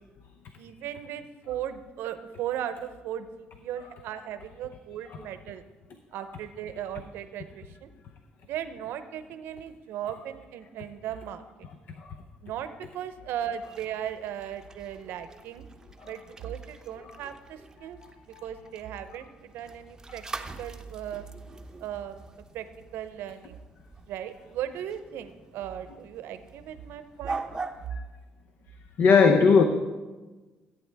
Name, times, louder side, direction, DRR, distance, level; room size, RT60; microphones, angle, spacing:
voice 1, 0.6-3.3 3.6-5.6 6.1-7.9 8.4-11.5 12.4-15.7 16.0-18.0 18.3-20.2 20.6-21.2 21.8-22.2 22.5-22.7 22.9-23.6 24.1-27.4, right 10 dB, 80° right, 11 dB, 0.7 m, -37 dB
sound 1, 13.4-27.9, right 4 dB, 15° right, 0.7 m, -43 dB
voice 2, 29.0-29.6, left 5 dB, 60° left, 7 dB, 0.7 m, -19 dB
14.5 x 8.7 x 3.4 m, 1.3 s
cardioid pair, 110°, 4 cm